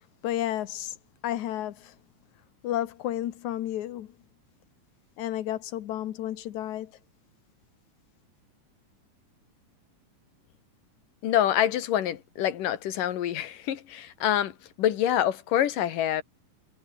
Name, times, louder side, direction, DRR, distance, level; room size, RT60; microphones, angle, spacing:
voice 1, 0.2-0.9 1.2-1.9 2.6-4.1 5.2-6.9, left 12 dB, 70° left, 2.6 m, -31 dB
voice 2, 11.2-16.2, left 11 dB, 85° left, 3.3 m, -26 dB
omnidirectional pair, 3.7 m